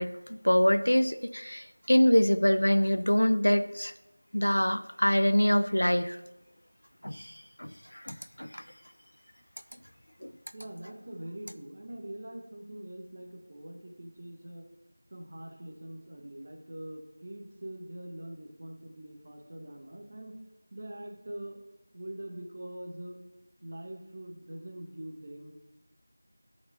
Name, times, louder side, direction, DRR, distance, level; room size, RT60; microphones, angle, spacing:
voice 1, 0.0-3.9 4.3-6.2 7.0-7.3 7.6-8.6 10.2-10.3, equal, 75° left, 12 dB, 0.5 m, -25 dB
voice 2, 10.5-14.6 15.1-20.3 20.7-21.6 21.9-23.2 23.6-25.5, right 1 dB, 30° right, 1 dB, 1.3 m, -43 dB
12.5 x 5.3 x 4.1 m, 0.94 s
figure-of-eight pair, 175°, 0 cm